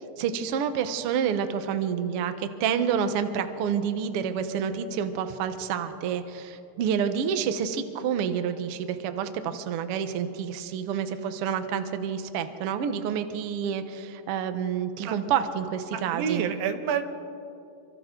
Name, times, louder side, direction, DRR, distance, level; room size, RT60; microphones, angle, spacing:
voice 1, 0.2-16.4, right 7 dB, 70° right, 9 dB, 1.4 m, -28 dB
voice 2, 15.9-17.0, right 7 dB, 90° right, 8 dB, 2.9 m, -28 dB
27.5 x 25.0 x 3.8 m, 2.7 s
omnidirectional pair, 4.0 m